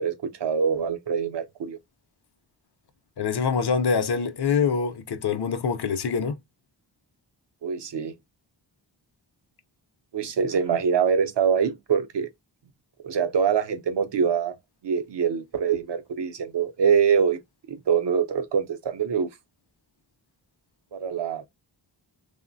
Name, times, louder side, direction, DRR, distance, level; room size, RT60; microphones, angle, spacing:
voice 1, 0.0-1.8 7.6-8.1 10.1-12.3 13.0-14.6 14.8-17.4 17.7-19.3 20.9-21.5, right 7 dB, 70° right, 0.6 m, -24 dB
voice 2, 3.2-6.4, left 6 dB, 65° left, 0.5 m, -25 dB
3.0 x 2.1 x 2.5 m
wide cardioid pair, 95°, 44 cm